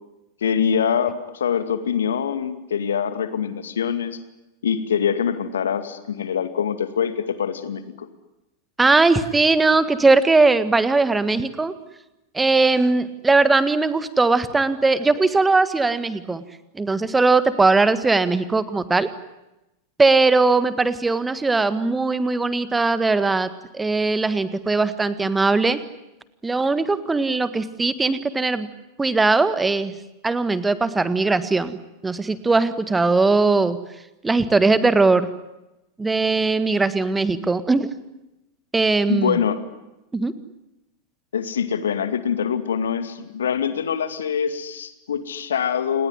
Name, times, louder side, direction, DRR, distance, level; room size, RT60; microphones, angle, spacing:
voice 1, 0.4-4.2 4.6-8.1 39.1-39.6 41.3-46.1, left 7 dB, 65° left, 11 dB, 2.3 m, -24 dB
voice 2, 8.8-11.7 12.3-16.4 16.7-19.1 20.0-25.8 26.4-28.7 29.0-29.9 30.2-33.8 34.2-35.3 36.0-37.9 38.7-39.4 40.1-40.3, right 3 dB, 10° right, 14 dB, 1.7 m, -19 dB
29.0 x 20.0 x 9.7 m, 0.96 s
figure-of-eight pair, 90°, 0 cm